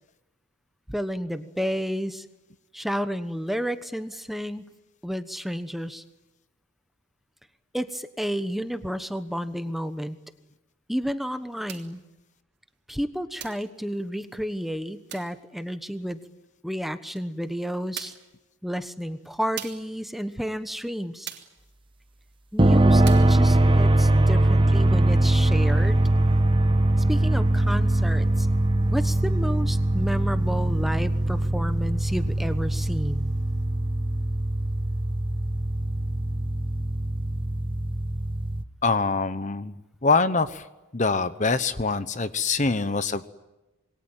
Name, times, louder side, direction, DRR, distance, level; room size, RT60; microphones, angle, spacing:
voice 1, 0.9-2.2 2.7-4.7 5.0-6.0 7.7-10.2 10.9-12.0 12.9-16.2 16.6-18.1 18.6-21.3 22.5-26.0 27.1-28.5 28.9-33.3, equal, ahead, 10 dB, 1.2 m, -31 dB
sound 1, 11.7-12.0 13.4-13.7 15.1-15.4 17.2-17.3 18.0-18.3 19.6-19.9 21.3-21.6 23.1-23.4, right 10 dB, 50° right, 3.2 m, -39 dB
sound 2, 22.6-38.6, right 1 dB, 25° right, 1.1 m, -22 dB
voice 2, 38.8-39.7 40.0-40.6 40.9-43.3, left 4 dB, 35° left, 12 dB, 1.0 m, -24 dB
27.5 x 22.5 x 9.3 m, 0.99 s
head